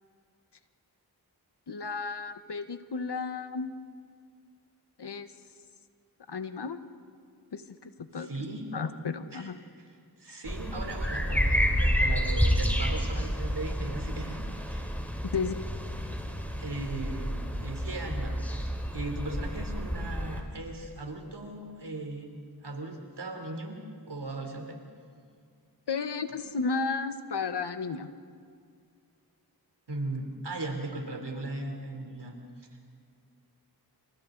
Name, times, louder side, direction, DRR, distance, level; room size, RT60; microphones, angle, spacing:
voice 1, 1.7-3.7 5.0-5.3 6.3-6.8 7.5-8.3 8.7-9.6 15.2-15.6 25.9-28.1, left 5 dB, 85° left, 10 dB, 1.2 m, -33 dB
voice 2, 8.1-8.6 9.3-9.5 10.2-14.4 14.7-14.9 16.6-17.3 17.6-18.4 18.9-22.2 22.6-23.8 24.1-24.8 29.9-32.3, right 2 dB, 80° right, 3 dB, 3.4 m, -37 dB
sound 1, 10.4-20.4, equal, 5° left, 3.5 m, -29 dB
28.5 x 28.5 x 3.9 m, 2.2 s
cardioid pair, 40°, 40 cm